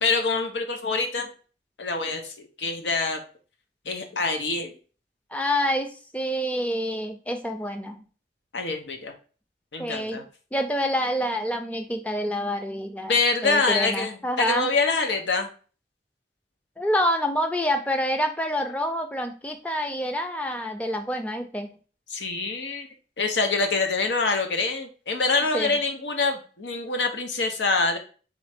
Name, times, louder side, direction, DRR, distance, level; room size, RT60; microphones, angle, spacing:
voice 1, 0.0-1.3 1.8-3.2 3.8-4.7 8.5-9.1 9.7-10.2 13.0-15.5 22.1-22.9 23.2-28.0, left 4 dB, 90° left, 4 dB, 0.8 m, -25 dB
voice 2, 5.3-8.0 9.8-10.2 10.5-13.1 13.4-14.7 16.8-21.7 25.5-25.7, equal, 10° left, 5 dB, 0.4 m, -27 dB
3.8 x 3.2 x 3.4 m, 0.38 s
head